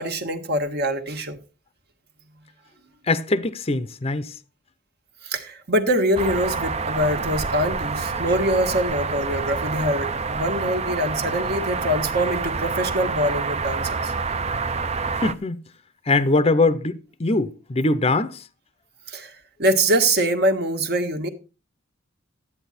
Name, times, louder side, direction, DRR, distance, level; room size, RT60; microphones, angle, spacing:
voice 1, 0.0-1.4 5.2-14.1 19.1-19.3 19.6-21.3, right 1 dB, 55° right, 1.6 m, -24 dB
voice 2, 3.1-4.3 15.2-15.6 16.1-18.4, left 2 dB, 30° left, 0.6 m, -22 dB
sound 1, 6.2-15.3, right 4 dB, 35° right, 0.6 m, -27 dB
12.5 x 8.7 x 4.2 m
head